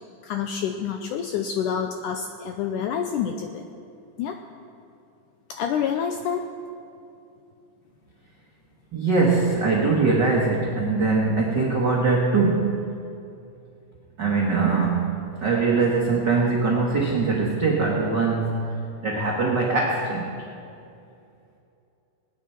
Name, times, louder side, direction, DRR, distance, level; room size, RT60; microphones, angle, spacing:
voice 1, 0.2-3.7 4.2-4.4 5.5-6.5, left 7 dB, 85° left, 5 dB, 1.8 m, -28 dB
voice 2, 8.9-12.8 14.2-20.4, right 4 dB, 80° right, -2 dB, 0.9 m, -22 dB
21.5 x 9.5 x 4.4 m, 2.6 s
omnidirectional pair, 4.3 m